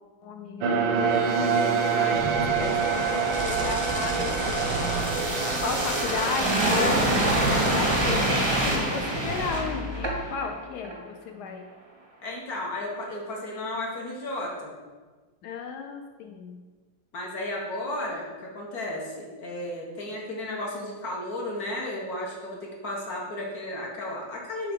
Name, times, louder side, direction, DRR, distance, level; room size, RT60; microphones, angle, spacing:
voice 1, 0.2-4.9 5.6-11.6 15.4-16.6, left 5 dB, 70° left, 4 dB, 1.0 m, -34 dB
sound 1, 0.6-7.8, right 5 dB, 90° right, 1.4 m, -27 dB
sound 2, 2.2-10.5 10.8-11.0, right 1 dB, 40° right, 0.4 m, -26 dB
voice 2, 12.2-14.8 17.1-24.7, left 1 dB, 55° left, -2 dB, 1.5 m, -34 dB
5.7 x 3.7 x 5.2 m, 1.3 s
omnidirectional pair, 2.1 m